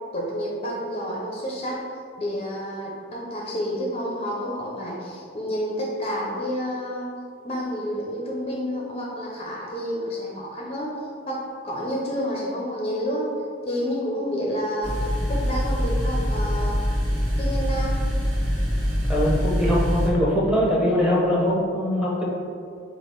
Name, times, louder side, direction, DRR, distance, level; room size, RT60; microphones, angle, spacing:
voice 1, 0.1-1.8 2.2-7.1 7.4-10.9 11.3-13.3 13.6-16.8 17.4-18.0, equal, 30° left, -3 dB, 0.5 m, -29 dB
sound 1, 14.8-20.1, equal, 75° right, 1.3 m, -24 dB
voice 2, 19.1-22.2, equal, 5° right, -5 dB, 0.9 m, -22 dB
4.9 x 2.4 x 4.4 m, 2.3 s
head